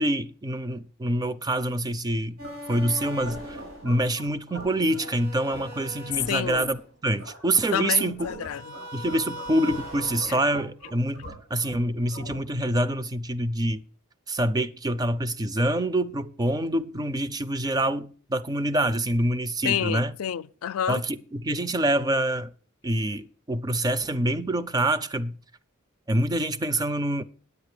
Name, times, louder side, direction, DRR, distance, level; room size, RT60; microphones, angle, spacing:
voice 1, 0.0-2.4 2.7-8.3 8.9-13.8 14.3-20.1 20.9-22.5 22.8-25.4 26.1-27.2, right 1 dB, 20° right, 0.4 m, -26 dB
sound 1, 2.4-12.8, equal, 90° right, 5.8 m, -40 dB
voice 2, 6.3-6.7 7.7-8.7 10.3-10.4 19.6-21.0, left 9 dB, 90° left, 0.4 m, -29 dB
9.5 x 8.6 x 4.9 m
head